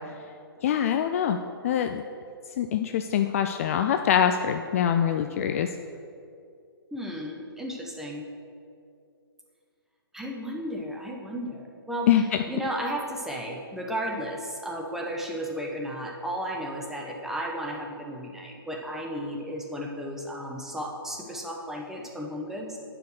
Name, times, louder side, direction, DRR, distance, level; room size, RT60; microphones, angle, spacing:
voice 1, 0.6-1.4 1.6-2.0 2.6-5.7 12.1-12.4, left 9 dB, 35° left, 7 dB, 0.3 m, -24 dB
voice 2, 6.9-8.3 10.1-12.1 12.5-22.8, equal, 5° right, -1 dB, 0.9 m, -34 dB
9.2 x 5.0 x 6.2 m, 2.4 s
figure-of-eight pair, 135°, 13 cm